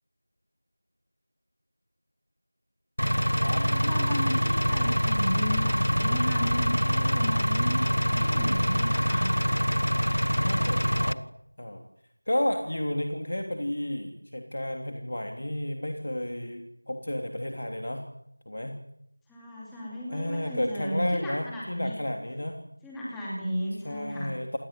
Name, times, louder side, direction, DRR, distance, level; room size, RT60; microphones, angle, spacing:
Engine, 3.0-11.1, equal, 85° left, 1.5 m, -25 dB
voice 1, 3.4-9.3 19.3-22.0 22.8-24.3, equal, ahead, -6 dB, 2.6 m, -34 dB
voice 2, 10.4-11.2 11.6-11.8 12.3-18.0 18.5-18.8 20.1-22.6 23.8-24.6, left 1 dB, 40° left, 4 dB, 3.2 m, -32 dB
28.5 x 20.0 x 9.2 m, 0.76 s
figure-of-eight pair, 175°, 0 cm